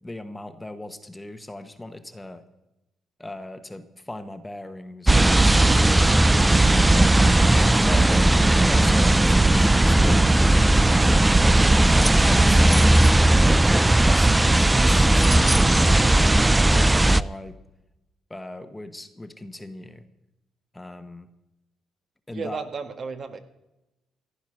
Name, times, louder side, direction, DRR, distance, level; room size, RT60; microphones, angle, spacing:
voice 1, 0.0-2.4 3.2-5.5 6.2-6.8 7.8-10.4 10.9-11.4 11.9-13.4 13.9-17.6 18.3-20.0 20.7-21.3 22.3-22.6, left 1 dB, 10° left, 9 dB, 1.2 m, -38 dB
sound 1, 5.1-17.2, right 1 dB, 15° right, 0.4 m, -17 dB
voice 2, 22.3-23.4, right 5 dB, 50° right, 7 dB, 1.6 m, -33 dB
15.0 x 10.5 x 6.4 m, 0.94 s
cardioid pair, 90°, 0 cm